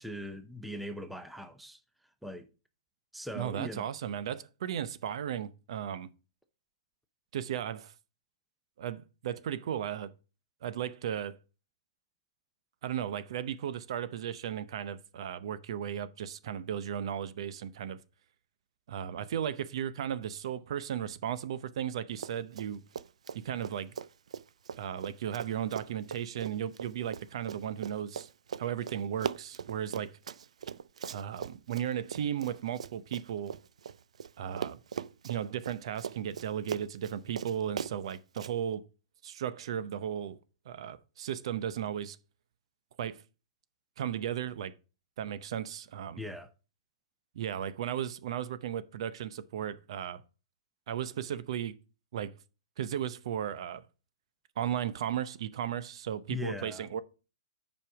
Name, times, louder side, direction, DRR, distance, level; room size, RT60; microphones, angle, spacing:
voice 1, 0.0-1.8 2.2-2.5 3.1-3.9 46.2-46.5 56.3-56.9, left 1 dB, ahead, 0.7 m, -40 dB
voice 2, 3.3-6.1 7.3-7.9 8.8-10.1 10.6-11.4 12.8-18.0 18.9-22.8 23.3-23.9 24.8-28.3 28.6-30.1 31.1-33.5 34.4-34.8 35.2-38.8 39.2-40.4 40.7-42.2 43.0-43.2 44.0-44.7 45.2-46.2 47.3-50.2 50.9-51.8 52.1-52.3 52.8-53.8 54.6-57.0, right 9 dB, 60° right, 0.7 m, -35 dB
Run, 22.1-22.7 22.9-34.3 34.6-38.5, right 7 dB, 90° right, 0.4 m, -40 dB
7.4 x 5.3 x 4.7 m
hypercardioid pair, 155°, 3 cm